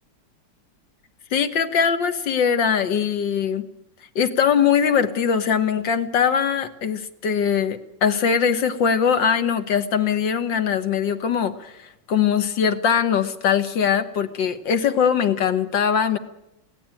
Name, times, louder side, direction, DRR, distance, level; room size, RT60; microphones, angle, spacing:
voice 1, 1.3-3.7 4.2-11.7 12.1-16.2, left 7 dB, 60° left, 8 dB, 1.9 m, -21 dB
22.0 x 17.0 x 9.1 m, 0.88 s
omnidirectional pair, 2.3 m